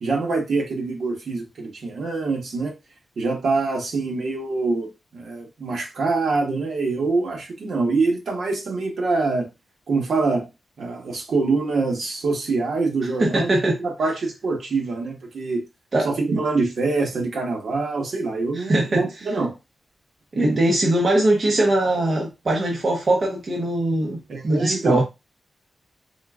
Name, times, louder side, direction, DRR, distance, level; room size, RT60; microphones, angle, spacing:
voice 1, 0.0-2.7 3.2-9.5 9.9-10.5 10.8-15.6 16.0-19.5 20.5-20.6 24.3-25.0, right 3 dB, 70° right, 1.2 m, -24 dB
voice 2, 13.2-13.8 15.9-16.1 18.5-19.0 20.3-25.0, right 1 dB, 40° right, 0.8 m, -21 dB
3.9 x 3.8 x 2.4 m
wide cardioid pair, 165°, 0 cm